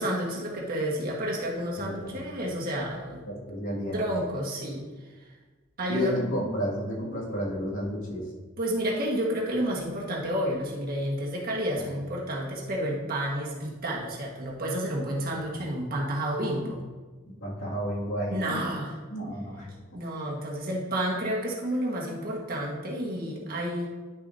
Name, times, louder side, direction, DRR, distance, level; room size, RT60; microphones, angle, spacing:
voice 1, 0.0-3.2 3.9-4.8 5.8-6.1 8.6-16.8 18.3-19.0 19.9-23.9, equal, 45° right, -3 dB, 1.6 m, -30 dB
voice 2, 1.8-2.3 3.3-4.0 5.9-8.2 11.8-11.9 15.5-15.7 17.4-18.4 19.1-19.8, equal, 75° left, -5 dB, 2.3 m, -31 dB
10.5 x 6.5 x 2.8 m, 1.3 s
head